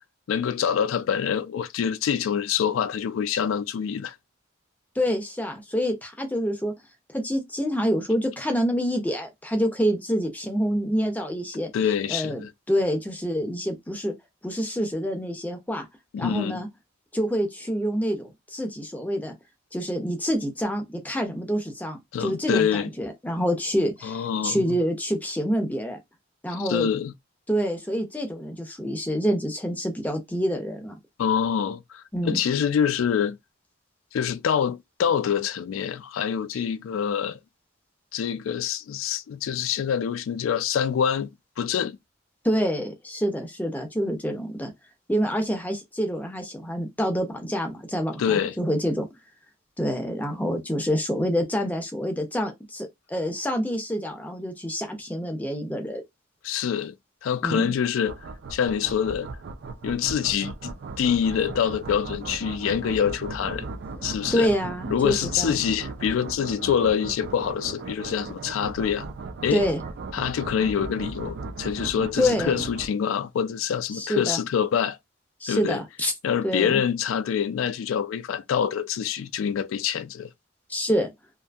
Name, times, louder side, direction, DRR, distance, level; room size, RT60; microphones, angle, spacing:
voice 1, 0.3-4.1 11.7-12.5 16.1-16.6 22.1-22.9 24.0-24.8 26.7-27.1 31.2-33.4 34.1-37.4 38.1-41.3 41.6-42.0 48.2-48.6 56.4-57.0 57.2-58.2 58.5-59.3 59.8-63.7 64.0-64.5 64.9-69.1 69.4-69.7 70.1-75.0 75.5-75.8 76.2-80.3, left 8 dB, 75° left, 0.3 m, -25 dB
voice 2, 5.0-6.7 7.1-11.7 12.1-14.1 14.4-15.9 16.2-16.7 17.1-19.3 19.7-26.0 26.4-26.9 27.5-31.0 32.1-32.4 42.4-44.7 45.1-49.1 49.8-56.0 57.4-57.7 63.9-64.0 64.3-65.5 69.5-69.8 72.2-72.6 73.9-74.4 75.4-76.1 76.4-76.8 80.7-81.1, equal, 10° left, 0.5 m, -27 dB
sound 1, 58.1-72.9, right 3 dB, 55° right, 0.4 m, -37 dB
2.6 x 2.4 x 2.3 m
head